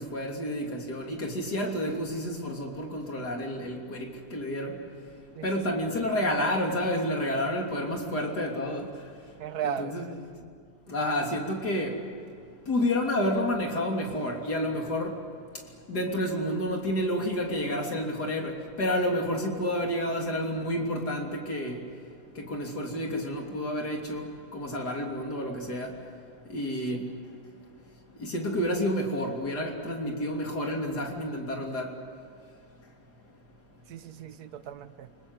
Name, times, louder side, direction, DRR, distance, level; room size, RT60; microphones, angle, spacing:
voice 1, 0.0-4.7 5.4-8.9 9.6-10.1 10.9-12.0 12.7-15.1 15.9-18.5 18.8-21.8 22.4-24.3 24.5-25.9 26.5-27.0 28.2-31.9, left 1 dB, 90° left, 1 dB, 3.9 m, -30 dB
voice 2, 5.3-5.8 9.4-10.2 26.6-27.0 33.9-35.1, right 9 dB, 75° right, 12 dB, 1.5 m, -37 dB
29.0 x 21.0 x 8.1 m, 2.4 s
omnidirectional pair, 1.7 m